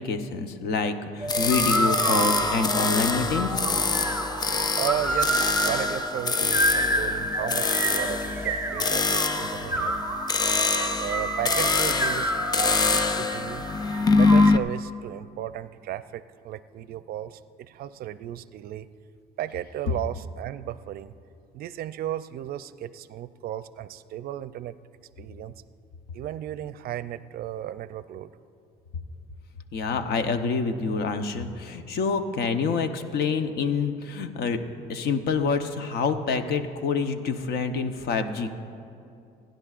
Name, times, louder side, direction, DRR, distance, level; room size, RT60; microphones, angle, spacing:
voice 1, 0.0-3.6 29.7-34.6 34.9-38.5, left 4 dB, 70° left, 7 dB, 0.9 m, -27 dB
sound 1, 1.2-14.5, right 1 dB, 15° right, 1.1 m, -29 dB
sound 2, 1.3-14.6, left 4 dB, 25° left, 0.4 m, -25 dB
voice 2, 4.7-10.0 11.0-12.4 12.9-13.7 14.2-18.9 19.4-21.1 21.5-24.8 25.2-25.6 26.1-28.3, right 12 dB, 65° right, 14 dB, 0.4 m, -35 dB
29.0 x 10.5 x 2.5 m, 2.5 s
cardioid pair, 110°, 17 cm